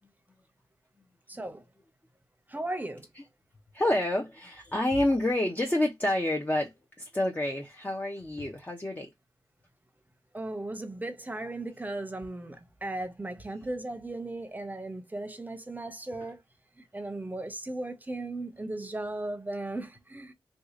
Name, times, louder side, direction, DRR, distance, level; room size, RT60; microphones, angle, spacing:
voice 1, 1.3-1.6 2.5-3.1 10.3-16.4 16.9-20.3, right 2 dB, 20° right, 0.8 m, -36 dB
voice 2, 3.7-9.1, left 1 dB, 20° left, 0.8 m, -28 dB
2.8 x 2.4 x 3.7 m
cardioid pair, 50°, 9 cm